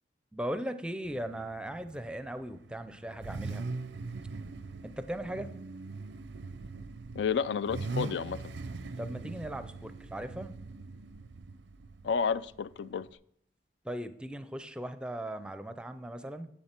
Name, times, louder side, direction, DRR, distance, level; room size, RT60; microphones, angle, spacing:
voice 1, 0.3-3.7 4.8-5.5 9.0-10.5 13.8-16.5, right 1 dB, 5° right, 0.5 m, -38 dB
Car / Idling / Accelerating revving vroom, 1.0-13.1, right 3 dB, 80° right, 0.5 m, -42 dB
voice 2, 7.1-8.4 12.0-13.1, left 6 dB, 75° left, 0.3 m, -31 dB
9.8 x 7.9 x 4.4 m
head